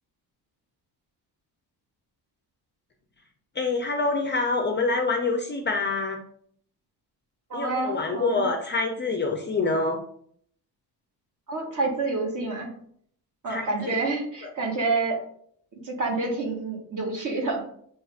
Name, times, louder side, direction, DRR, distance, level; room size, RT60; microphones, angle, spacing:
voice 1, 3.6-6.2 7.5-10.0 13.5-14.0, left 3 dB, 30° left, 2 dB, 0.4 m, -26 dB
voice 2, 7.5-8.5 11.5-12.7 13.4-15.2 15.8-17.6, right 3 dB, 50° right, -1 dB, 1.4 m, -28 dB
7.5 x 2.9 x 2.4 m, 0.63 s
cardioid pair, 165°, 41 cm